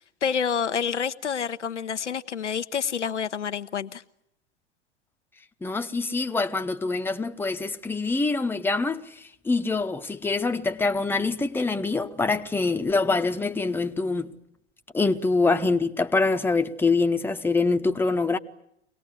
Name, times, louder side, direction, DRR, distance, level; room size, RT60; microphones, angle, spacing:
voice 1, 0.0-4.0, left 7 dB, 80° left, 0.9 m, -28 dB
voice 2, 5.6-14.3 14.9-18.4, left 3 dB, 5° left, 1.0 m, -25 dB
24.5 x 19.0 x 9.8 m
figure-of-eight pair, 90°, 35 cm